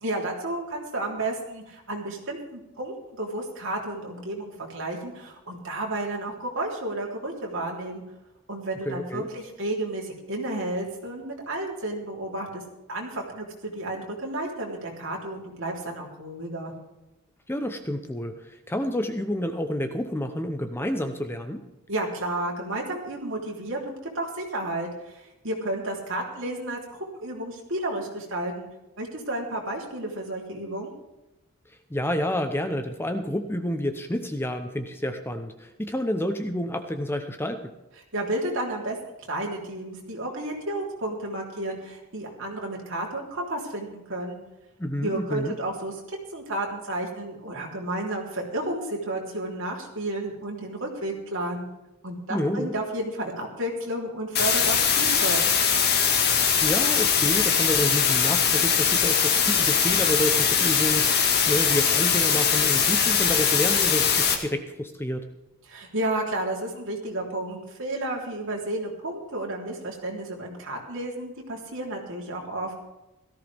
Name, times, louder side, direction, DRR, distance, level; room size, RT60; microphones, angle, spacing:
voice 1, 0.0-8.0 8.5-12.6 12.9-16.7 21.9-26.8 27.1-28.7 29.0-30.9 38.1-39.0 39.3-44.4 45.0-46.0 46.3-51.7 52.0-55.4 65.7-72.7, right 1 dB, 60° right, -1 dB, 3.7 m, -32 dB
voice 2, 8.8-9.3 17.5-21.6 31.9-37.7 44.8-45.5 52.3-52.7 56.6-65.3, left 1 dB, 10° left, 7 dB, 0.9 m, -29 dB
sound 1, 54.4-64.4, left 7 dB, 50° left, 1.9 m, -21 dB
17.5 x 14.0 x 3.6 m, 0.96 s
head